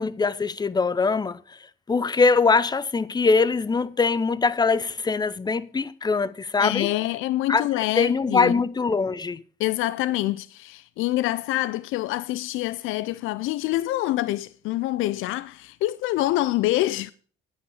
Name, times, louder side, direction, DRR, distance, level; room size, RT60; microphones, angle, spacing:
voice 1, 0.0-1.6 1.9-6.9 7.5-7.7 8.0-9.4, left 4 dB, 20° left, 0.6 m, -22 dB
voice 2, 6.6-8.5 9.6-17.1, left 16 dB, 90° left, 0.4 m, -26 dB
9.6 x 9.4 x 4.8 m
cardioid pair, 90°, 20 cm